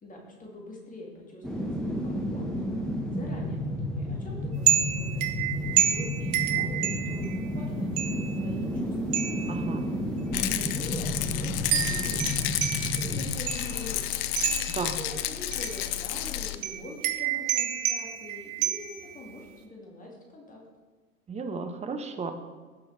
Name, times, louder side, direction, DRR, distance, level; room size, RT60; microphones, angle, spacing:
voice 1, 0.0-2.7 3.1-9.0 10.5-12.4 12.8-14.2 15.0-20.6, left 1 dB, 20° left, -1 dB, 2.1 m, -44 dB
sound 1, 1.4-14.5 14.8-14.9, equal, ahead, 1.3 m, -32 dB
sound 2, 4.7-7.5 8.0-8.4 9.1-9.6 10.4-10.5 11.7-13.8 14.4-14.9 15.5-15.9 16.6-19.2, right 11 dB, 40° right, 1.0 m, -29 dB
voice 2, 9.5-9.9 14.7-15.0 21.3-22.3, right 4 dB, 15° right, 6 dB, 0.9 m, -33 dB
Rattle, 10.3-16.6, left 14 dB, 40° left, 0.6 m, -31 dB
16.0 x 6.1 x 3.3 m, 1.4 s
figure-of-eight pair, 90°, 42 cm